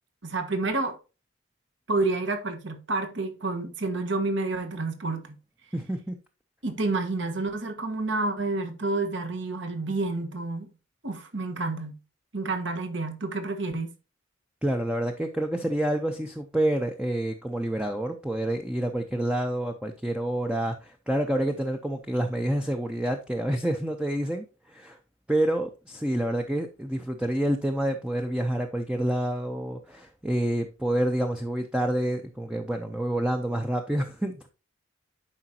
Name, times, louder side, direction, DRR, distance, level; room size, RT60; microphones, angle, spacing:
voice 1, 0.2-1.0 1.9-5.4 6.6-10.7 11.0-12.0 12.3-13.9, right 3 dB, 60° right, 1.4 m, -29 dB
voice 2, 5.7-6.2 14.6-25.0 25.3-34.5, right 1 dB, 5° right, 0.6 m, -28 dB
11.5 x 5.0 x 2.8 m
head